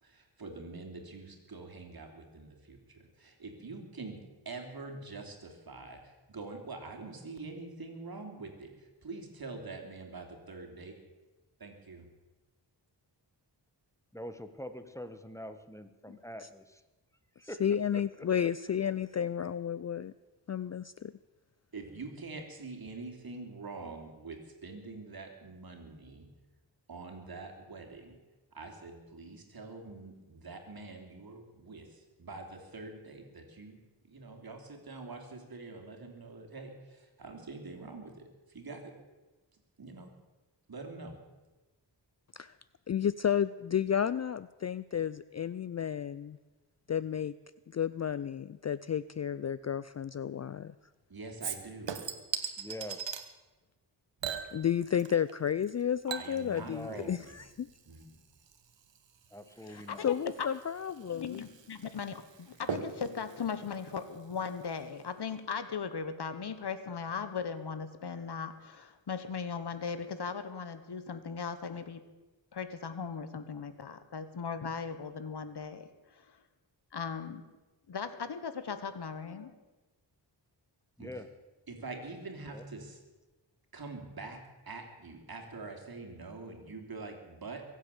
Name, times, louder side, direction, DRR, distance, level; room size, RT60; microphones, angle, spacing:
voice 1, 0.0-11.0 11.6-12.1 21.7-26.3 26.9-28.2 28.5-38.9 39.8-40.1 40.7-41.1 51.1-52.0 56.1-57.4 57.9-58.2 81.0-81.2 81.7-83.0 83.7-87.6, right 3 dB, 55° right, 3 dB, 3.2 m, -45 dB
voice 2, 14.1-16.6 17.5-17.6 17.9-18.0 52.6-53.1 56.6-57.2 59.3-60.1 81.0-81.3 82.5-82.6, equal, 5° left, 9 dB, 1.4 m, -44 dB
voice 3, 16.1-16.5 17.4-20.1 20.5-21.1 42.3-42.5 42.9-46.4 46.9-47.3 47.7-50.7 54.5-57.7 59.6-61.4, left 8 dB, 40° left, 16 dB, 0.4 m, -32 dB
Chink clink / Liquid, 51.4-53.3 54.2-55.4 55.6-64.7 65.0-65.1, right 7 dB, 80° right, 1.4 m, -42 dB
voice 4, 59.7-60.5 61.1-72.0 72.5-75.9 76.2-76.3 76.9-77.4 77.9-79.5, left 6 dB, 65° left, 11 dB, 1.4 m, -38 dB
23.0 x 8.4 x 7.1 m, 1.2 s
cardioid pair, 70°, 44 cm